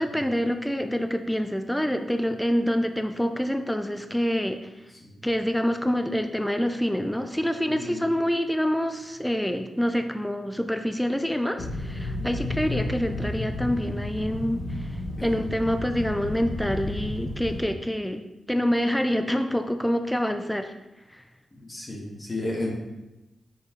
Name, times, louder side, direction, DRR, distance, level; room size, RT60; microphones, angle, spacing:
voice 1, 0.0-4.8 5.2-18.2 18.5-20.7 21.1-21.2, equal, 5° left, 7 dB, 0.5 m, -26 dB
voice 2, 7.7-8.0 12.2-12.3 15.2-15.4 21.6-22.7, left 2 dB, 35° left, -3 dB, 2.0 m, -33 dB
sound 1, 11.6-17.6, left 1 dB, 70° left, 1.1 m, -32 dB
6.7 x 4.7 x 3.2 m, 1.0 s
cardioid pair, 60°, 0 cm